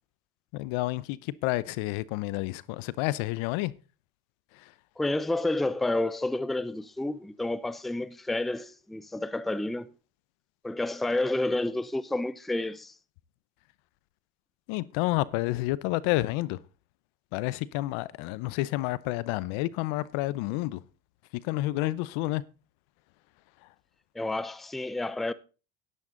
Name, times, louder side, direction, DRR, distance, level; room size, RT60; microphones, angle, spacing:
voice 1, 0.5-3.8 4.5-4.7 14.7-16.6 17.3-20.8 21.4-22.4 23.6-23.7, left 18 dB, 70° left, 0.9 m, -30 dB
voice 2, 5.0-9.9 10.6-12.9 24.1-25.3, left 2 dB, ahead, 0.6 m, -30 dB
11.0 x 10.5 x 3.9 m
supercardioid pair, 85°, 49 cm